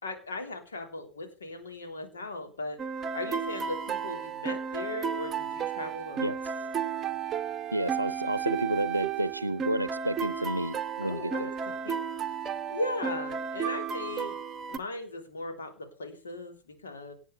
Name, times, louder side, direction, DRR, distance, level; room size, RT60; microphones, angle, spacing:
voice 1, 0.0-2.8 3.1-6.3 11.0-12.0 12.3-14.4 14.7-17.1, left 2 dB, 70° left, 3.3 m, -38 dB
sound 1, 2.8-14.8, right 7 dB, 25° right, 0.9 m, -33 dB
voice 2, 7.7-11.5, right 1 dB, 85° right, 0.7 m, -31 dB
18.0 x 6.6 x 6.9 m
figure-of-eight pair, 90°, 0 cm